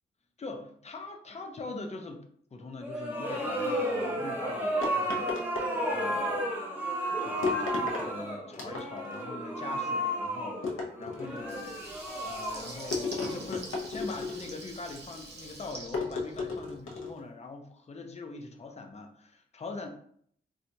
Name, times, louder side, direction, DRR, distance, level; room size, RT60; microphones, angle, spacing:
voice 1, 0.4-2.2 2.5-5.4 5.9-6.5 7.2-11.7 12.2-19.9, left 3 dB, 30° left, 4 dB, 0.5 m, -42 dB
sound 1, 2.8-13.8, right 1 dB, 10° right, 0.7 m, -33 dB
sound 2, 4.8-6.2 7.4-8.1 8.5-9.2 10.6-11.5 12.9-14.7 15.9-17.2, left 4 dB, 85° left, 0.7 m, -34 dB
Water tap faucet / Liquid, 11.4-16.9, right 2 dB, 55° right, 0.7 m, -45 dB
4.4 x 2.3 x 2.7 m, 0.62 s
wide cardioid pair, 130°, 21 cm